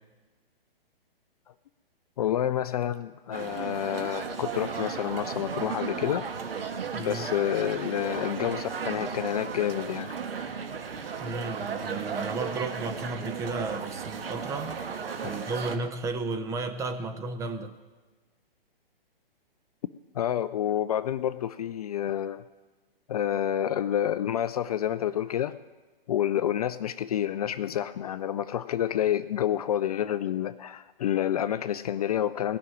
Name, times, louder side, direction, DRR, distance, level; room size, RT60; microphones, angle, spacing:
voice 1, 2.2-6.3 7.0-10.1 15.2-15.5 20.1-22.4 23.1-25.6 26.1-32.6, left 11 dB, 40° left, 13 dB, 0.4 m, -29 dB
sound 1, 3.3-15.8, right 6 dB, 75° right, 1.5 m, -35 dB
voice 2, 6.9-7.3 11.2-17.7, right 3 dB, 10° right, 6 dB, 0.6 m, -33 dB
18.0 x 6.1 x 9.8 m, 1.3 s
hypercardioid pair, 135°, 30 cm